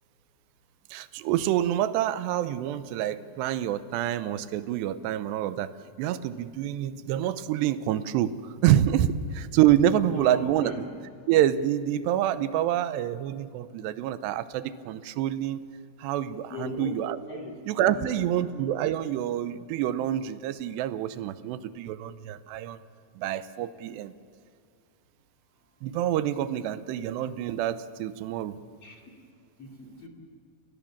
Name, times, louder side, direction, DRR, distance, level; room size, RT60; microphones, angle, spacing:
voice 1, 0.9-5.7 6.0-8.3 8.6-10.7 11.3-15.6 16.0-17.2 17.7-22.8 23.2-24.1 25.8-28.6, right 11 dB, 80° right, 14 dB, 2.8 m, -27 dB
voice 2, 10.0-10.9 16.5-17.5 17.8-18.5 28.8-29.0 29.6-30.1, left 2 dB, 40° left, 1 dB, 3.0 m, -39 dB
29.0 x 19.0 x 7.3 m, 2.4 s
omnidirectional pair, 5.0 m